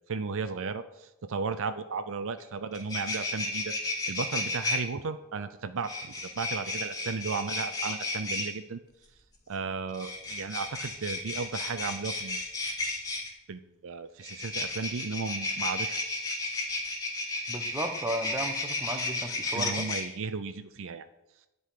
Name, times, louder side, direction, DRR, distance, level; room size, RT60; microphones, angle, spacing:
voice 1, 0.1-8.8 9.5-12.4 13.5-16.0 19.5-21.1, right 4 dB, 65° right, 11 dB, 0.6 m, -35 dB
sound 1, 2.4-2.5 2.7-4.8 5.8-8.5 9.9-13.3 14.2-20.0, left 2 dB, 15° left, 2.5 m, -33 dB
voice 2, 17.5-19.9, right 1 dB, 15° right, 6 dB, 1.0 m, -34 dB
11.0 x 5.3 x 8.4 m, 0.95 s
head